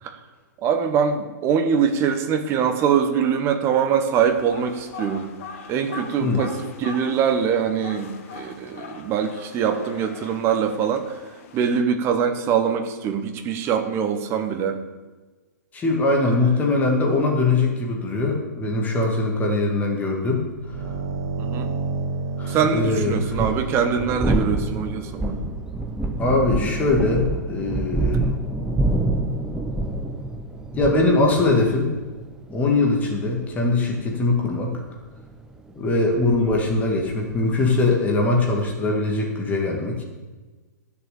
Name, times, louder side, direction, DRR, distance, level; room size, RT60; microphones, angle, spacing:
voice 1, 0.6-5.3 5.7-11.2 11.5-14.8 21.4-21.7 22.5-25.4 36.4-36.5, right 7 dB, 25° right, 8 dB, 1.3 m, -23 dB
sound 1, 4.2-11.8, left 5 dB, 45° left, 1.5 m, -41 dB
voice 2, 15.7-20.4 22.4-23.4 26.2-28.2 30.7-31.9 32.5-34.7 35.8-40.0, left 2 dB, 15° left, 0 dB, 2.1 m, -21 dB
sound 2, 20.5-24.9, right 3 dB, 55° right, 1.4 m, -30 dB
sound 3, 21.0-21.1 23.1-38.7, right 2 dB, 5° right, 0.9 m, -28 dB
13.5 x 7.1 x 6.9 m, 1.3 s
figure-of-eight pair, 115°, 10 cm